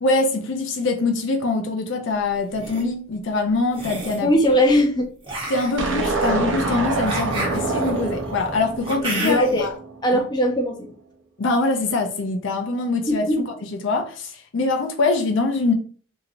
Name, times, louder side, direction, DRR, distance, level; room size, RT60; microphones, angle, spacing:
voice 1, 0.0-4.3 5.5-9.7 10.1-10.2 11.4-13.3 13.8-15.7, left 3 dB, 70° left, 0.5 m, -23 dB
sound 1, 2.4-2.8 3.7-4.3 5.2-9.7, right 1 dB, 25° right, 0.8 m, -32 dB
voice 2, 4.2-5.1 9.2-9.7 10.0-10.9 13.1-13.4, equal, 20° left, 0.6 m, -19 dB
sound 2, 5.8-10.2, right 3 dB, 65° right, 0.6 m, -26 dB
2.9 x 2.8 x 2.5 m
head